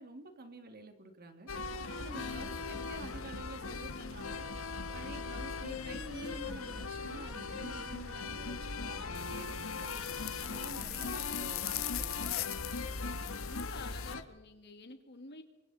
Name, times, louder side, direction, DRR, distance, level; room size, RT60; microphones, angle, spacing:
voice 1, 0.0-1.5 1.9-4.4 4.9-10.0 10.4-12.3, right 2 dB, 50° right, 6 dB, 2.6 m, -49 dB
sound 1, 1.5-14.2, left 3 dB, 90° left, 1.5 m, -39 dB
sound 2, 9.1-14.1, left 16 dB, 70° left, 0.8 m, -40 dB
voice 2, 13.4-15.4, left 3 dB, 55° left, 7 dB, 2.4 m, -49 dB
28.5 x 24.0 x 4.3 m, 1.0 s
head